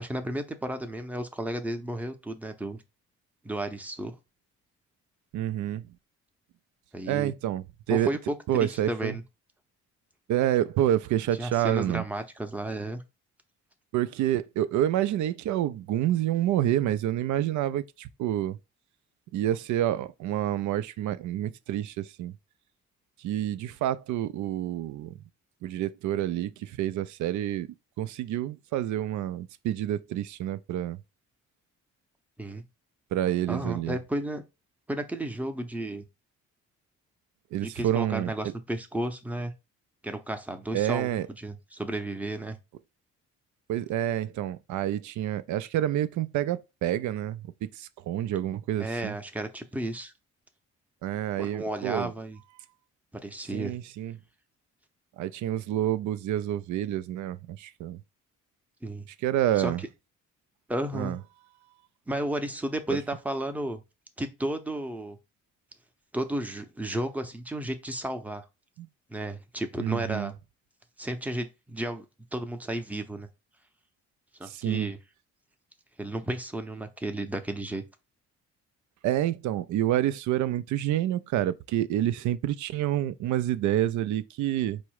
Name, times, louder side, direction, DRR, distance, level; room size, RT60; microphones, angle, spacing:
voice 1, 0.0-2.8 3.4-4.2 6.9-7.3 7.9-9.2 11.4-13.0 32.4-32.6 33.5-34.4 34.9-36.0 37.6-39.5 40.0-42.6 48.8-50.1 51.4-52.4 53.1-53.7 58.8-59.1 59.6-59.7 60.7-61.1 62.1-63.8 64.2-65.2 66.1-68.4 69.1-70.3 71.0-72.0 72.3-73.3 74.4-75.0 76.0-77.8, right 1 dB, 5° right, 0.7 m, -33 dB
voice 2, 5.3-5.9 7.1-8.1 8.5-9.2 10.3-12.0 13.9-18.6 19.3-22.3 23.2-25.1 25.6-31.0 33.1-34.0 37.5-38.5 40.7-41.3 43.7-47.5 47.7-49.2 51.0-52.1 53.5-54.2 55.2-58.0 59.2-59.8 60.9-61.2 62.9-63.0 68.8-68.9 69.8-70.3 74.5-74.9 79.0-84.8, right 12 dB, 70° right, 0.4 m, -28 dB
4.6 x 2.1 x 4.6 m
cardioid pair, 90°, 30 cm